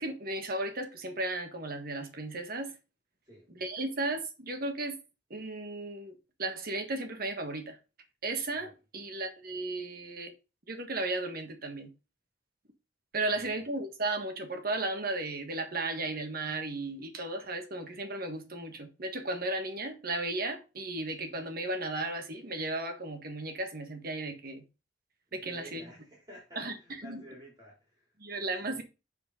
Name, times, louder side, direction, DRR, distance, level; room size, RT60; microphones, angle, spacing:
voice 1, 0.0-2.7 3.5-5.0 5.3-7.8 8.2-10.3 10.7-11.9 13.1-24.6 25.3-25.8 26.6-26.7 27.0-27.2 28.2-28.8, right 2 dB, 55° right, 1.6 m, -35 dB
voice 2, 25.4-28.1 28.6-28.8, equal, 20° right, 3.6 m, -52 dB
8.0 x 4.6 x 4.9 m
head